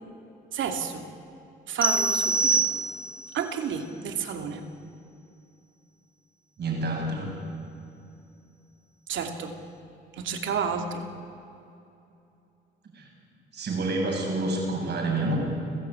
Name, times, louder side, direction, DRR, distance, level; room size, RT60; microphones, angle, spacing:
voice 1, 0.5-1.1 1.7-2.6 3.3-4.6 9.1-9.5 10.1-11.0, right 6 dB, 75° right, 5 dB, 2.6 m, -30 dB
sound 1, 1.8-3.3, right 3 dB, 25° right, 1.2 m, -25 dB
voice 2, 6.6-7.4 12.9-13.1 13.5-15.4, right 2 dB, 60° right, 0 dB, 7.7 m, -28 dB
29.5 x 15.5 x 8.8 m, 2.7 s
cardioid pair, 90°, 20 cm